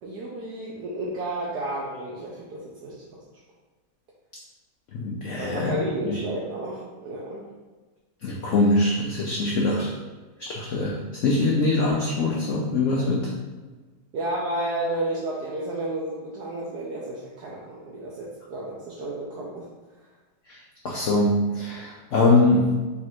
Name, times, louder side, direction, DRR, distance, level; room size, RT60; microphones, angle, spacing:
voice 1, 0.0-3.2 5.4-7.5 13.0-13.1 14.1-19.7, right 1 dB, 75° right, -5 dB, 1.2 m, -32 dB
voice 2, 4.9-5.8 6.1-6.2 8.2-9.9 10.4-11.0 11.2-13.2 20.8-22.7, left 2 dB, 65° left, -3 dB, 0.8 m, -22 dB
4.1 x 2.5 x 4.4 m, 1.3 s
omnidirectional pair, 1.8 m